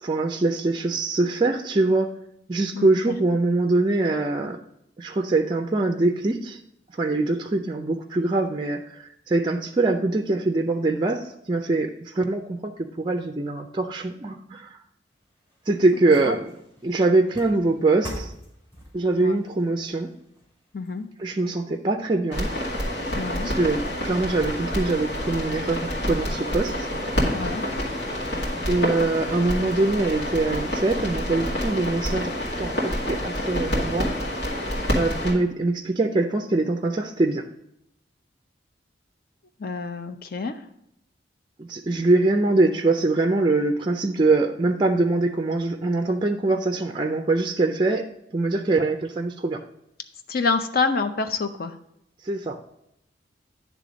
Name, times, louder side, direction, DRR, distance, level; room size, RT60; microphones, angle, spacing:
voice 1, 0.0-2.1 2.5-4.6 5.0-6.6 6.9-14.8 15.7-16.5 16.8-18.3 18.9-20.1 21.2-22.5 23.4-26.9 28.7-34.1 34.9-37.5 41.6-48.1 48.3-49.6 52.2-52.6, right 2 dB, 25° right, 5 dB, 0.4 m, -23 dB
voice 2, 2.7-3.2 16.2-16.3 19.2-19.4 20.7-21.1 23.1-23.5 27.3-27.6 39.6-40.6 50.3-51.8, left 4 dB, 55° left, 8 dB, 0.6 m, -27 dB
sound 1, 15.1-21.5 22.0-22.1, equal, 15° left, 2.4 m, -44 dB
sound 2, 22.3-35.3, equal, 75° left, 2.0 m, -27 dB
10.0 x 3.4 x 5.0 m, 0.78 s
head